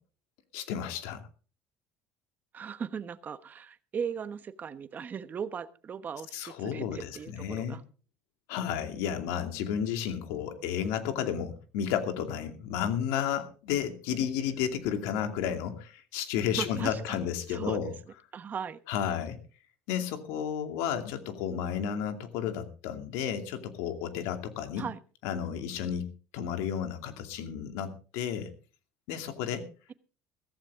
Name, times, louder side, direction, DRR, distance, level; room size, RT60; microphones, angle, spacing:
voice 1, 0.5-1.2 6.3-7.8 8.5-17.9 18.9-19.4 19.9-24.9 25.2-26.1 26.3-28.5 29.1-29.7, left 9 dB, 85° left, 6 dB, 2.5 m, -32 dB
voice 2, 2.5-7.8 16.5-17.9 18.3-18.8 24.8-25.0, right 7 dB, 35° right, 12 dB, 1.1 m, -38 dB
16.0 x 15.0 x 3.7 m, 0.38 s
cardioid pair, 120°, 5 cm